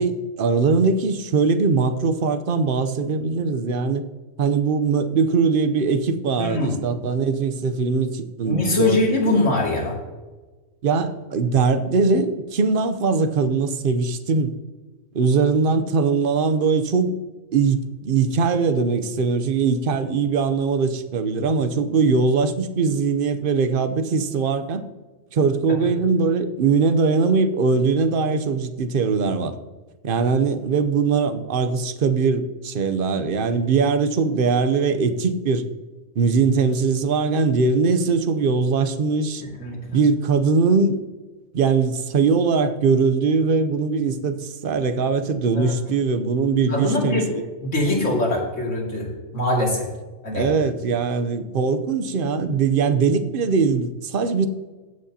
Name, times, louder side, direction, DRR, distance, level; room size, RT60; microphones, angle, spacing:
voice 1, 0.0-4.0 4.4-9.0 9.3-9.4 10.8-14.5 15.1-17.1 17.5-24.8 25.3-29.5 30.0-35.6 36.2-39.4 39.9-41.0 41.5-47.4 50.3-54.5, right 4 dB, 50° right, 10 dB, 0.8 m, -21 dB
voice 2, 6.4-6.8 8.4-10.0 25.7-25.9 39.4-40.0 45.5-45.7 46.7-47.3 47.6-49.9 50.2-50.5, left 2 dB, 70° left, -2 dB, 2.7 m, -23 dB
16.5 x 6.4 x 2.8 m, 1.3 s
omnidirectional pair, 1.3 m